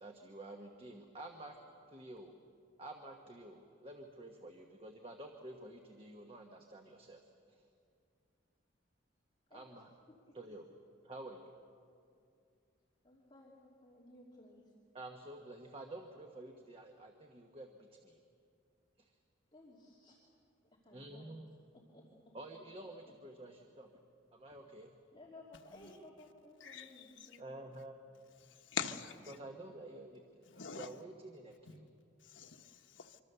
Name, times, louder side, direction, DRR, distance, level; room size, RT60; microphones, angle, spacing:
voice 1, 0.0-1.6 1.9-2.4 2.8-7.7 9.5-9.9 10.3-10.7 11.0-11.5 14.9-18.2 19.0-19.2 20.9-21.5 22.3-23.9 24.3-24.9 27.4-28.4 29.3-30.2 30.7-31.9, right 1 dB, 30° right, 1.3 m, -50 dB
voice 2, 9.5-9.8 10.1-10.4 13.0-14.7 19.5-20.2 20.8-21.3 21.7-22.3 25.1-27.5, left 1 dB, 25° left, 2.9 m, -58 dB
voice 3, 28.7-29.3 30.5-30.9 32.2-33.2, left 6 dB, 75° left, 1.2 m, -42 dB
25.5 x 24.5 x 6.8 m
head